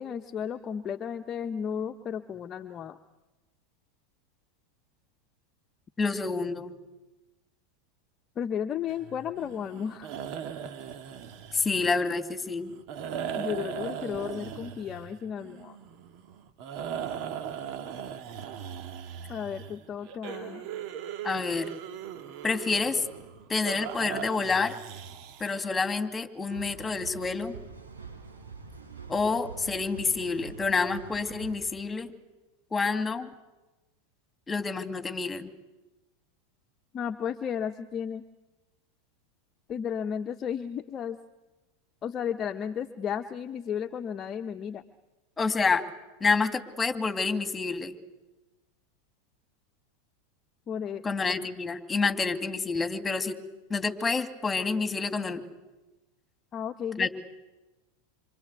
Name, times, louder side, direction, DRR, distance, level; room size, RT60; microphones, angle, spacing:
voice 1, 0.0-3.0 8.4-10.2 13.3-15.8 19.3-20.7 36.9-38.2 39.7-41.2 42.0-44.8 50.7-51.0 56.5-57.1, left 8 dB, 35° left, 6 dB, 1.1 m, -33 dB
voice 2, 6.0-6.7 11.5-12.7 21.2-21.7 22.4-23.0 23.5-24.8 25.4-27.5 29.1-32.1 32.7-33.3 34.5-35.5 45.4-45.8 46.2-47.9 51.0-53.4 53.7-55.4 57.0-57.1, left 4 dB, 15° left, 8 dB, 2.8 m, -28 dB
sound 1, 8.9-25.9, right 8 dB, 50° right, 2.2 m, -39 dB
sound 2, 26.5-31.6, right 5 dB, 80° right, 6.6 m, -45 dB
27.0 x 26.0 x 8.3 m, 1.1 s
hypercardioid pair, 90°, 0 cm